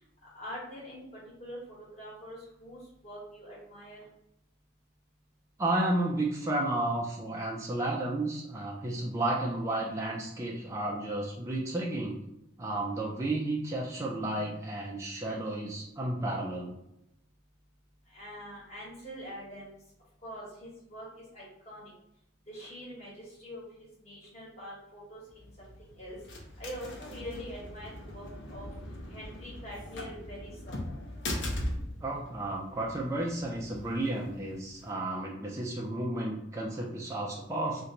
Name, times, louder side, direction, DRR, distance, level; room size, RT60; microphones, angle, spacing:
voice 1, 0.3-1.0 1.4-1.6 2.0-4.0 18.1-19.8 20.2-21.1 21.3-21.9 22.5-23.6 24.0-26.2 26.6-28.7 29.1-30.7, equal, 35° left, -7 dB, 1.4 m, -44 dB
voice 2, 5.6-12.2 12.6-16.8 32.0-37.8, right 2 dB, 15° right, -2 dB, 0.3 m, -32 dB
sound 1, 25.3-34.9, left 1 dB, 70° left, 0.6 m, -40 dB
2.9 x 2.1 x 3.7 m, 0.80 s
head